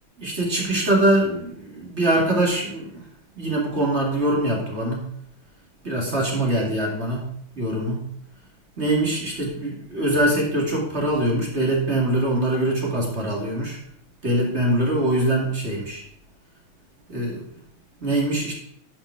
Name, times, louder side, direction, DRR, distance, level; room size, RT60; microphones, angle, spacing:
voice 1, 0.2-3.0 3.4-5.0 5.8-7.2 7.5-8.0 8.8-13.8 14.2-16.0 17.1-17.4 18.0-18.5, right 1 dB, 30° right, -2 dB, 2.6 m, -23 dB
11.5 x 5.9 x 4.8 m, 0.67 s
omnidirectional pair, 2.3 m